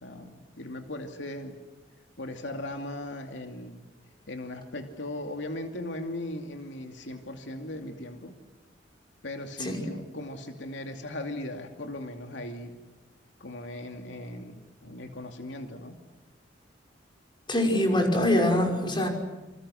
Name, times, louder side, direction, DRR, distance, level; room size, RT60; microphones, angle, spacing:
voice 1, 0.0-1.6 2.2-3.8 4.3-8.4 9.2-12.7 13.4-16.0, left 1 dB, 85° left, 4 dB, 2.6 m, -38 dB
voice 2, 17.5-19.1, left 1 dB, 25° left, 3 dB, 5.8 m, -24 dB
28.5 x 27.0 x 6.5 m, 1.1 s
head